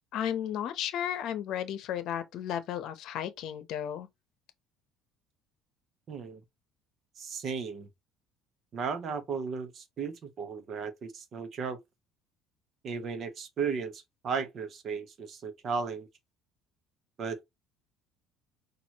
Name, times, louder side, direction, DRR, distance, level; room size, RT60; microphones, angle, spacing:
voice 1, 0.1-4.1, left 10 dB, 60° left, 0.8 m, -34 dB
voice 2, 6.1-6.4 7.2-7.9 8.7-11.8 12.8-16.1 17.2-17.4, right 5 dB, 40° right, 1.0 m, -35 dB
6.1 x 2.6 x 3.0 m
cardioid pair, 125°, 0 cm